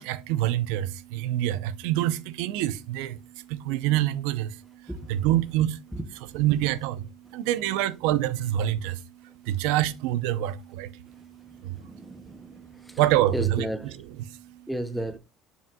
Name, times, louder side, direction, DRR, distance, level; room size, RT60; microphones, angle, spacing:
voice 1, 0.0-6.0 6.3-13.7 14.2-14.7, right 13 dB, 90° right, 0.6 m, -27 dB
voice 2, 11.5-13.0 13.3-13.9 14.7-15.2, right 1 dB, ahead, 0.5 m, -34 dB
7.3 x 6.0 x 2.2 m
cardioid pair, 175°, 0 cm